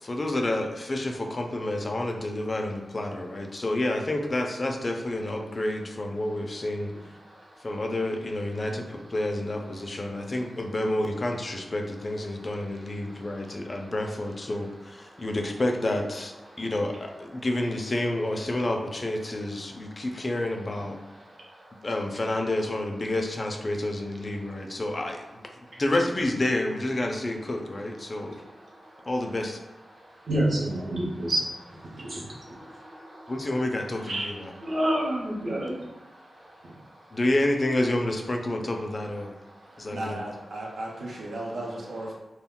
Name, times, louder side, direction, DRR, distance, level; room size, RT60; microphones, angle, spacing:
voice 1, 0.0-6.9 7.6-21.0 21.8-25.2 25.8-28.4 29.1-29.6 33.3-34.5 37.1-39.3 39.8-40.2, left 1 dB, 30° left, 3 dB, 0.3 m, -29 dB
voice 2, 7.2-7.7 13.0-13.7 15.1-15.2 16.5-16.6 21.2-21.9 25.7-25.8 28.0-29.1 29.9-33.3 34.0-37.2 39.5-39.9, right 1 dB, 45° right, -4 dB, 0.7 m, -32 dB
voice 3, 39.7-42.1, right 1 dB, 90° right, -2 dB, 0.6 m, -35 dB
2.2 x 2.1 x 3.6 m, 1.0 s
wide cardioid pair, 145°, 0 cm